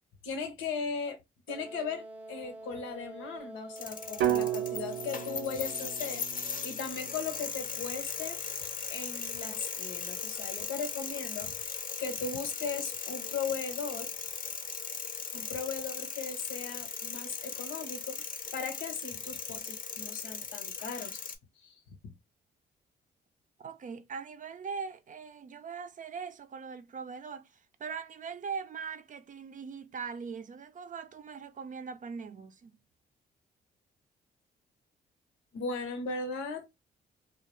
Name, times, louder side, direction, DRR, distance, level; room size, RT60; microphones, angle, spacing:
voice 1, 0.2-1.2 1.5-8.4 8.9-14.1 15.3-21.4 21.6-22.1 35.5-36.7, left 5 dB, 85° left, 0.7 m, -38 dB
Wind instrument woodwind instrument, 1.5-6.2, right 2 dB, 10° right, 0.7 m, -46 dB
sound 1, 3.8-21.4, left 6 dB, 45° left, 0.6 m, -38 dB
sound 2, 4.2-8.3, right 12 dB, 90° right, 0.5 m, -34 dB
voice 2, 23.6-32.8, right 6 dB, 40° right, 0.5 m, -41 dB
2.2 x 2.0 x 3.0 m
supercardioid pair, 55°, 20 cm